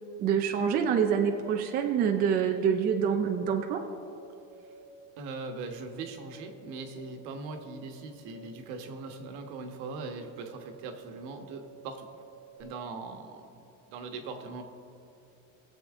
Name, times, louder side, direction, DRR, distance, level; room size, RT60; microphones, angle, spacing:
voice 1, 0.2-3.8, right 7 dB, 25° right, 4 dB, 0.4 m, -26 dB
sound 1, 2.8-3.5 4.1-4.9 5.7-6.3 7.0-7.7 8.3-12.6, right 4 dB, 30° left, 2.7 m, -53 dB
voice 2, 5.2-12.2 12.6-14.6, right 4 dB, 65° right, 5 dB, 1.4 m, -40 dB
21.5 x 7.7 x 3.6 m, 2.6 s
cardioid pair, 175°, 39 cm